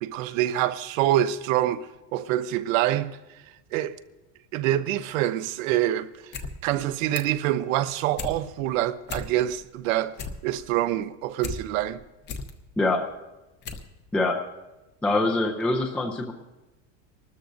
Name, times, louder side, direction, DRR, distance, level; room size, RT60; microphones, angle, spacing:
voice 1, 0.0-1.9 2.1-3.1 3.7-4.0 4.5-6.1 6.6-10.1 10.4-12.0, right 13 dB, 75° right, 0.8 m, -25 dB
sound 1, 6.1-6.5 6.8-7.4 7.8-8.4 8.7-8.8 9.0-9.6 9.9-11.6 12.0-12.5 13.1-13.2 13.6-13.9 14.2-14.3, left 4 dB, 25° left, 0.8 m, -35 dB
voice 2, 15.0-16.3, left 2 dB, 5° left, 0.4 m, -24 dB
25.0 x 13.0 x 2.6 m
cardioid pair, 165°, 40 cm